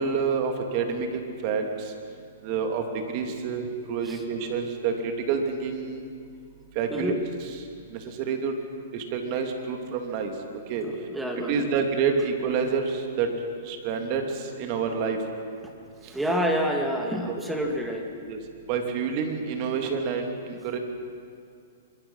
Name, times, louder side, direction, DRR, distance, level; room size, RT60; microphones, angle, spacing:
voice 1, 0.0-1.6 2.4-6.1 6.7-7.1 7.9-8.5 8.9-10.3 10.7-10.8 11.3-13.3 13.7-14.2 14.6-15.2 18.3-18.4 18.7-20.8, right 6 dB, 40° right, 4 dB, 3.1 m, -28 dB
voice 2, 10.8-11.6 16.1-18.1, equal, 5° right, 2 dB, 2.6 m, -28 dB
25.5 x 23.0 x 5.9 m, 2.3 s
hypercardioid pair, 140°, 0 cm